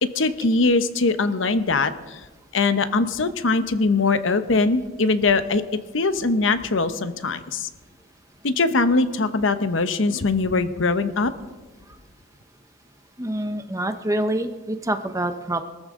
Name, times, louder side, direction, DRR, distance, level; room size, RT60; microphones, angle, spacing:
voice 1, 0.1-2.2 2.5-5.6 5.9-7.7 8.4-11.3, left 3 dB, 75° left, 11 dB, 0.9 m, -21 dB
voice 2, 13.2-15.6, right 1 dB, 15° right, 8 dB, 0.9 m, -26 dB
22.5 x 14.0 x 3.8 m, 1.2 s
head